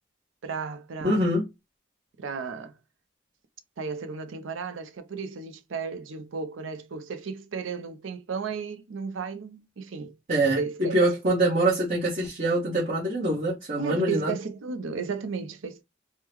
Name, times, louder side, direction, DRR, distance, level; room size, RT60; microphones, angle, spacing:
voice 1, 0.4-1.3 2.2-2.7 3.8-10.1 10.6-11.0 13.8-15.8, right 5 dB, 85° right, 0.5 m, -34 dB
voice 2, 1.0-1.4 10.3-14.3, right 1 dB, 40° right, 1.1 m, -24 dB
3.6 x 2.2 x 3.0 m
head